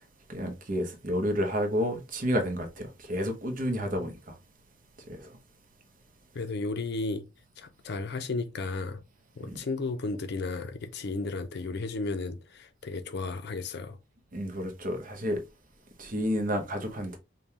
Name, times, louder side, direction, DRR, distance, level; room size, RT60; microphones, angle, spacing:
voice 1, 0.3-4.3 5.1-5.3 9.5-9.6 14.3-15.4 16.0-17.2, equal, 45° right, 0.8 m, -30 dB
voice 2, 3.7-4.1 6.3-7.2 7.6-9.0 9.4-14.0, left 3 dB, 60° left, 0.5 m, -34 dB
5.3 x 2.2 x 2.8 m
head